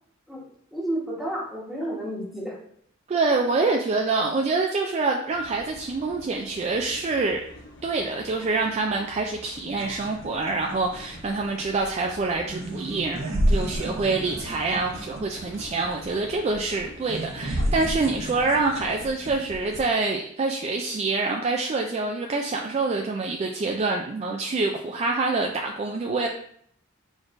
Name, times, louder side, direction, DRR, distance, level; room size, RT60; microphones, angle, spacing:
voice 1, 0.3-2.6 13.8-13.9, right 1 dB, ahead, -5 dB, 1.2 m, -32 dB
voice 2, 3.1-7.4 7.8-26.3, right 3 dB, 30° right, 1 dB, 0.3 m, -26 dB
sound 1, 5.3-19.0, left 1 dB, 60° left, 0.7 m, -47 dB
sound 2, 9.7-19.9, equal, 65° right, 0.7 m, -31 dB
4.6 x 4.2 x 2.5 m, 0.65 s
head